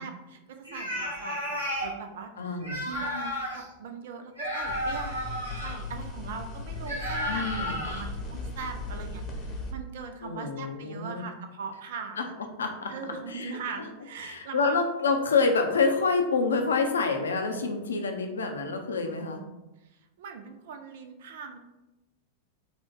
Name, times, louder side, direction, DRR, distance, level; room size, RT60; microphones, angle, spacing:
voice 1, 0.0-12.3 12.9-14.8 20.2-21.6, right 5 dB, 55° right, 6 dB, 0.4 m, -41 dB
sound 1, 0.6-1.9 2.6-3.6 4.4-5.8 6.9-8.0, equal, 75° right, 1.1 m, -32 dB
voice 2, 2.4-2.8 7.3-7.8 10.2-11.2 12.2-12.3 12.6-12.9 13.3-13.5 14.2-19.4, left 4 dB, 70° left, 4 dB, 0.5 m, -27 dB
sound 2, 4.7-9.7, left 3 dB, 25° left, 0.8 m, -37 dB
4.2 x 2.2 x 4.1 m, 1.0 s
figure-of-eight pair, 90°, 0 cm